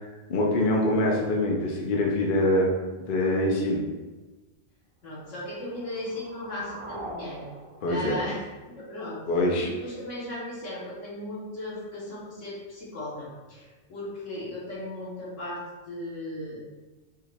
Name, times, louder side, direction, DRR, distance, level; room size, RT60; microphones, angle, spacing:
voice 1, 0.3-2.7 3.0-3.8 7.8-8.2 9.3-9.7, left 1 dB, 50° left, -1 dB, 0.8 m, -24 dB
voice 2, 5.0-7.4 7.9-8.4 8.7-9.2 9.6-15.6 15.9-16.6, left 1 dB, 85° left, -7 dB, 1.8 m, -36 dB
sound 1, 5.3-9.3, right 1 dB, 40° right, 0.4 m, -43 dB
5.6 x 2.5 x 3.3 m, 1.2 s
omnidirectional pair, 1.3 m